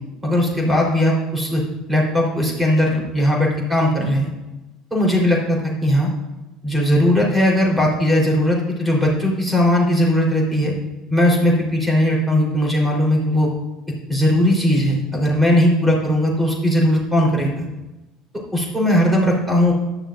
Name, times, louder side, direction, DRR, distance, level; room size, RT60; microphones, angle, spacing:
voice 1, 0.2-1.6 1.9-4.3 4.9-6.1 6.6-10.7 11.1-13.5 14.1-17.7 18.5-19.7, left 1 dB, 10° right, -1 dB, 4.2 m, -18 dB
13.5 x 11.5 x 2.7 m, 1.0 s
figure-of-eight pair, 65°, 0 cm